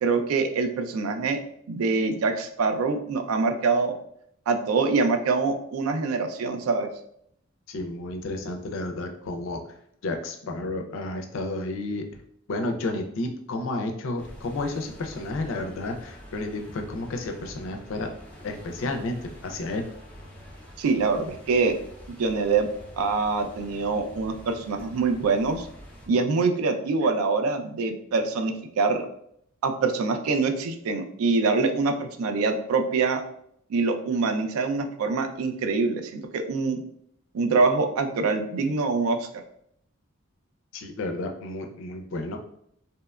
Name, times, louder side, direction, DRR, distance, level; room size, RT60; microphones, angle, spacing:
voice 1, 0.0-1.4 1.7-3.9 4.5-6.9 20.8-21.7 22.1-22.7 23.0-25.7 26.1-29.1 29.6-33.2 33.7-36.8 37.3-39.4, right 4 dB, 80° right, 6 dB, 0.3 m, -25 dB
voice 2, 7.7-9.6 10.0-12.1 12.5-18.1 18.4-19.9 40.7-42.4, left 2 dB, 65° left, 5 dB, 0.4 m, -31 dB
sound 1, 14.2-26.1, equal, 5° left, 0.5 m, -46 dB
2.8 x 2.1 x 2.3 m, 0.71 s
head